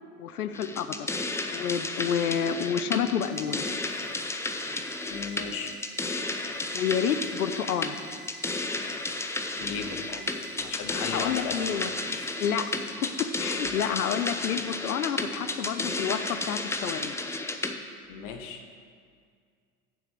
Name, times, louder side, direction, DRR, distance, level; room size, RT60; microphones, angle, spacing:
voice 1, 0.2-1.1 1.5-3.6 6.7-7.9 11.1-11.9 12.4-17.2, left 8 dB, 80° left, 11 dB, 0.6 m, -29 dB
sound 1, 0.5-17.7, left 2 dB, 5° left, 0.4 m, -33 dB
sound 2, 3.2-12.9, right 4 dB, 25° right, 1.0 m, -48 dB
voice 2, 5.1-5.8 9.6-10.3 10.5-12.4 13.4-13.5 18.0-18.7, left 6 dB, 45° left, 6 dB, 1.0 m, -37 dB
7.2 x 6.0 x 7.6 m, 2.1 s
figure-of-eight pair, 75°, 43 cm